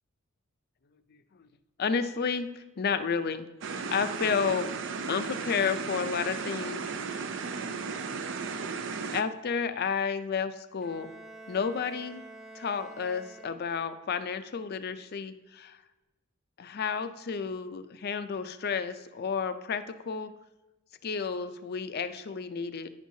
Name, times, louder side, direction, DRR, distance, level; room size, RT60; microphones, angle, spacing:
voice 1, 1.8-4.7 5.1-6.8 9.1-11.1 11.5-12.2 12.5-15.8 16.6-20.3 21.0-22.9, left 6 dB, 45° left, 11 dB, 0.4 m, -31 dB
sound 1, 3.6-9.2, right 5 dB, 60° right, 0.5 m, -35 dB
Bowed string instrument, 10.8-14.0, right 2 dB, ahead, 0.6 m, -48 dB
10.0 x 6.2 x 2.7 m, 1.1 s
head